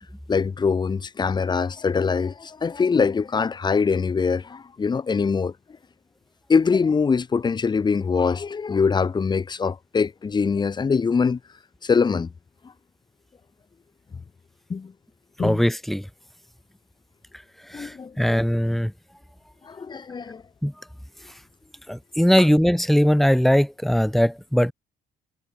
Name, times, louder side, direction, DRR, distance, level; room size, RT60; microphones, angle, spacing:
voice 1, 0.3-5.5 6.5-11.4 11.8-12.3 14.7-14.9 15.4-15.6 17.7-18.4 19.7-20.4, left 5 dB, 25° left, 1.4 m, -23 dB
voice 2, 15.4-16.0 17.7-18.9 20.6-20.7 21.9-24.7, equal, ahead, 1.5 m, -20 dB
cardioid pair, 110°, 17 cm